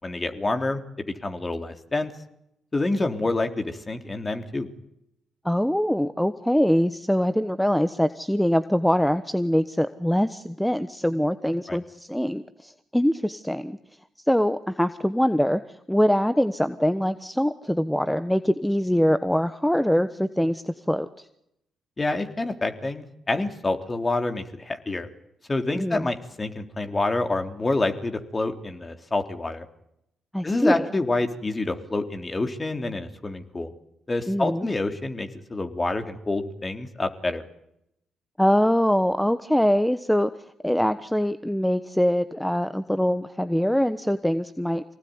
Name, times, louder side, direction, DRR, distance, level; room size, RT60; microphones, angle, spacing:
voice 1, 0.0-2.1 2.7-4.7 11.7-11.8 22.0-25.1 25.5-29.7 30.4-33.7 34.1-37.4, left 2 dB, 30° left, 6 dB, 3.5 m, -27 dB
voice 2, 5.4-13.8 14.3-15.6 15.9-21.1 25.7-26.1 30.3-30.9 34.3-34.7 38.4-40.3 40.6-44.8, equal, 5° left, 12 dB, 1.2 m, -23 dB
25.5 x 18.5 x 9.7 m, 0.79 s
hypercardioid pair, 45°, 0 cm